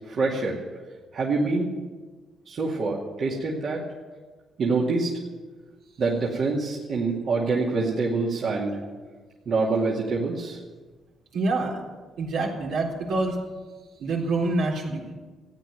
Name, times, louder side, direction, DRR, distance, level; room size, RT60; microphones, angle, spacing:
voice 1, 0.1-0.6 1.1-1.7 2.5-3.8 4.6-5.1 6.0-8.7 9.5-10.6, right 3 dB, 60° right, -4 dB, 2.3 m, -25 dB
voice 2, 11.3-11.8 12.2-13.4 14.0-15.1, right 2 dB, 80° right, -2 dB, 3.9 m, -26 dB
14.5 x 9.4 x 9.1 m, 1.3 s
cardioid pair, 90°, 0 cm